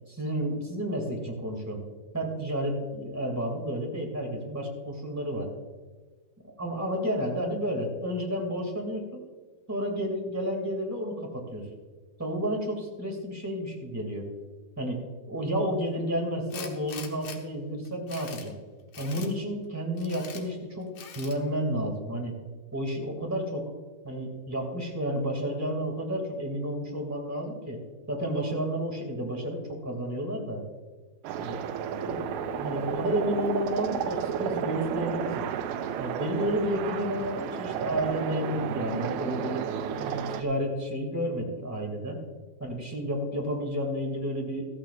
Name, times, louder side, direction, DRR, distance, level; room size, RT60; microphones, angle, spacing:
voice 1, 0.1-1.8 2.1-5.5 6.6-9.2 9.7-11.7 12.2-14.3 14.8-18.6 19.0-22.4 22.7-23.7 24.0-27.8 28.1-30.6 31.4-31.6 32.0-32.3 32.6-35.4 36.0-39.6 40.0-42.2 42.6-44.6, equal, 5° right, 0 dB, 1.3 m, -31 dB
Tools, 16.5-17.4 17.9-18.5 18.9-19.3 20.0-20.4 21.0-21.4, left 7 dB, 60° left, 2.3 m, -42 dB
sound 1, 31.2-40.4, right 8 dB, 85° right, 2.7 m, -32 dB
15.0 x 14.5 x 2.5 m, 1.3 s
omnidirectional pair, 4.4 m